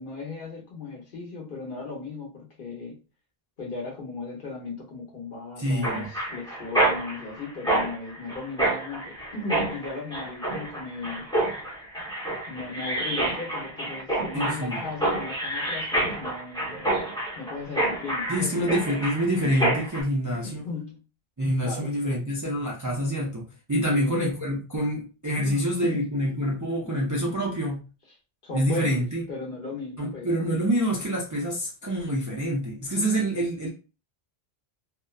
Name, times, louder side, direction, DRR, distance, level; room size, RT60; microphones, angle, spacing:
voice 1, 0.0-3.0 3.6-11.3 12.5-17.0 17.4-18.5 20.4-21.0 21.6-22.2 23.9-24.2 25.3-26.2 26.8-27.1 28.4-30.3, left 4 dB, 60° left, 1.0 m, -37 dB
voice 2, 5.6-6.1 14.3-14.8 18.3-20.7 21.4-27.8 28.5-29.2 30.0-33.7, equal, 30° right, 0.3 m, -26 dB
Mechanisms, 5.8-20.0, right 1 dB, 5° left, 0.7 m, -28 dB
2.6 x 2.1 x 2.3 m
omnidirectional pair, 1.0 m